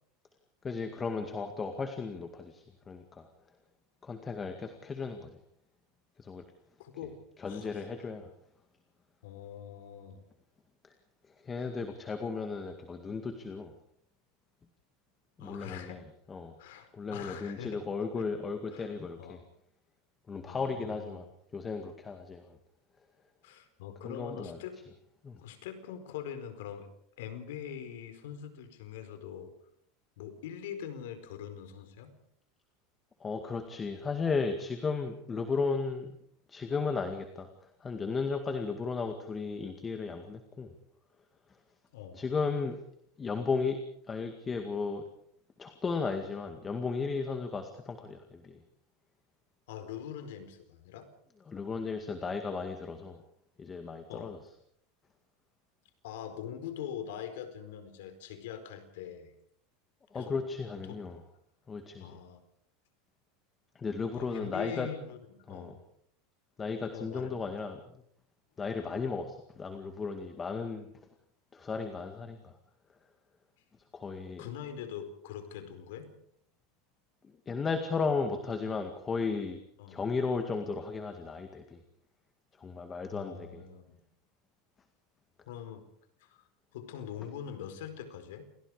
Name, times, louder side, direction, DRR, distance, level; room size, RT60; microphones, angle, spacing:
voice 1, 0.6-3.3 4.0-5.4 6.2-6.4 7.4-8.3 10.8-10.9 11.3-13.7 15.4-16.6 16.9-19.4 20.3-21.3 21.5-22.6 24.0-24.6 25.2-25.4 33.2-36.2 36.5-40.8 42.1-42.8 43.2-45.0 45.6-48.6 51.5-53.2 53.6-54.4 60.1-61.2 61.7-62.2 63.8-64.9 65.5-65.8 66.6-68.0 68.6-70.9 71.5-72.6 73.9-74.5 77.2-79.6 79.9-81.8 82.6-83.6, left 4 dB, 20° left, 7 dB, 2.0 m, -35 dB
voice 2, 6.8-7.1 7.5-7.7 9.2-10.2 15.4-16.0 16.6-17.8 18.7-18.9 19.2-19.4 20.5-21.2 23.4-24.7 25.4-26.9 27.2-29.5 30.2-32.1 41.9-42.2 49.7-51.1 54.1-54.3 56.0-59.3 60.1-60.3 60.9-61.0 62.0-62.4 64.1-65.2 65.5-65.8 66.9-67.3 74.1-76.1 79.8-80.0 83.1-84.0 85.4-85.8 86.2-86.4 86.7-88.5, left 9 dB, 80° left, 8 dB, 4.6 m, -43 dB
28.5 x 19.5 x 5.0 m, 0.68 s
supercardioid pair, 135°, 0 cm